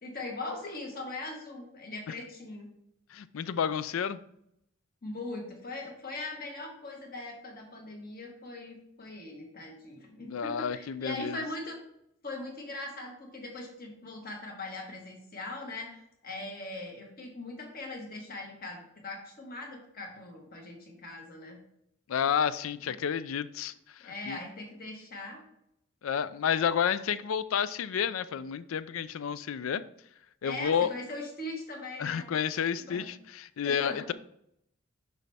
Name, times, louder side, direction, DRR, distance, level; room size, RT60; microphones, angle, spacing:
voice 1, 0.0-2.7 5.0-11.8 12.2-21.6 24.0-25.4 30.4-32.3 32.9-33.1 33.6-34.1, left 2 dB, 45° left, 1 dB, 1.5 m, -40 dB
voice 2, 3.1-4.2 10.3-11.4 22.1-24.4 26.0-29.8 30.4-30.9 32.0-34.1, left 7 dB, 75° left, 16 dB, 0.4 m, -30 dB
6.1 x 5.4 x 3.4 m, 0.76 s
head